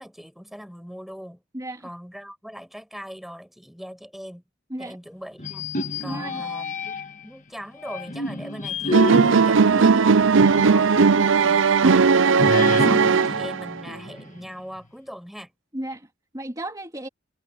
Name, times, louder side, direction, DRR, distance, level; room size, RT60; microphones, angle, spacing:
voice 1, 0.0-1.4 1.8-4.4 4.8-5.7 6.0-6.9 7.2-10.3 10.6-11.0 11.3-15.5, equal, ahead, 5.7 m, -40 dB
voice 2, 1.5-1.9 4.7-5.0 6.0-6.4 9.7-10.0 15.7-16.1 16.3-17.1, right 1 dB, 20° right, 3.0 m, -33 dB
sound 1, 5.4-7.2 7.8-10.8 11.2-11.3 12.4-14.5, left 2 dB, 40° left, 2.2 m, -29 dB
sound 2, 8.9-13.8, right 5 dB, 85° right, 0.6 m, -17 dB
head